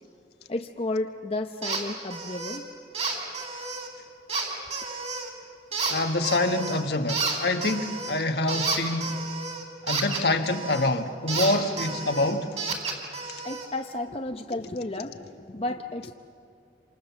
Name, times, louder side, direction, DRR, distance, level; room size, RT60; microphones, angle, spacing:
voice 1, 0.5-2.7 4.6-4.7 13.4-16.1, left 2 dB, 35° left, 0.8 m, -32 dB
sound 1, 1.6-1.8 2.1-2.6 2.9-3.9 4.3-5.3 5.7-6.8 7.1-10.9 11.3-13.7, right 4 dB, 40° right, 4.3 m, -31 dB
voice 2, 5.9-9.2 9.8-12.5 13.3-13.4, left 2 dB, 65° left, 1.5 m, -26 dB
27.5 x 27.0 x 7.2 m
head